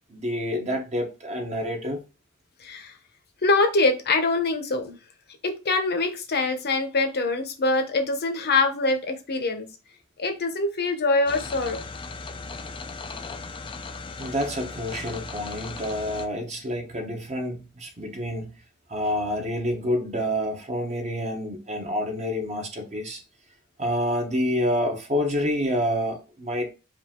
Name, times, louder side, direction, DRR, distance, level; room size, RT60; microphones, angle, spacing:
voice 1, 0.1-2.0 14.2-18.5 18.9-23.2 23.8-26.7, equal, 30° right, 1.0 m, -28 dB
voice 2, 2.6-2.9 3.4-5.0 5.4-9.7 10.2-11.8, left 3 dB, 50° left, 0.9 m, -24 dB
sound 1, 11.3-16.3, left 4 dB, 25° left, 0.4 m, -37 dB
4.9 x 2.6 x 3.7 m
head